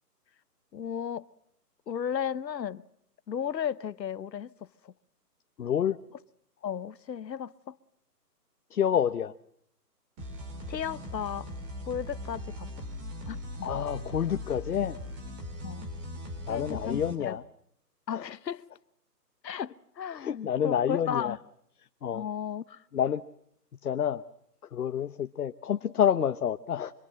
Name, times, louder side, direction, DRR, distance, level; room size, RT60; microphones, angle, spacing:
voice 1, 0.7-1.3 1.9-2.8 3.3-4.5 4.8-4.9 6.6-7.8 10.7-11.5 11.9-12.7 13.3-13.7 15.6-15.9 16.5-17.0 17.3-17.4 18.1-18.6 19.4-21.4 22.1-22.8, left 8 dB, 90° left, 1.1 m, -34 dB
voice 2, 5.6-6.0 8.7-9.3 13.6-15.0 16.5-17.4 18.1-18.3 20.1-21.4 22.0-22.3 22.9-23.2 23.8-24.2 24.7-26.9, left 9 dB, 65° left, 1.0 m, -28 dB
sound 1, 10.2-17.1, left 1 dB, 15° right, 3.4 m, -39 dB
26.5 x 25.5 x 7.7 m
hypercardioid pair, 170°, 49 cm